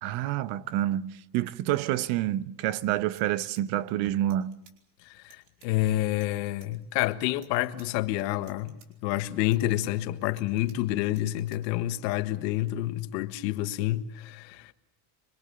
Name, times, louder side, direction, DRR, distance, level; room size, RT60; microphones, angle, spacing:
voice 1, 0.0-4.6, right 13 dB, 60° right, 1.1 m, -28 dB
sound 1, 3.0-4.8 5.2-5.7 6.1-6.7 7.2-7.9 8.2-8.9 9.4-10.8 11.1-11.6, right 7 dB, 85° right, 5.0 m, -58 dB
voice 2, 5.0-8.8 9.0-14.7, left 15 dB, 85° left, 1.7 m, -28 dB
25.5 x 25.0 x 7.0 m
cardioid pair, 155°, 49 cm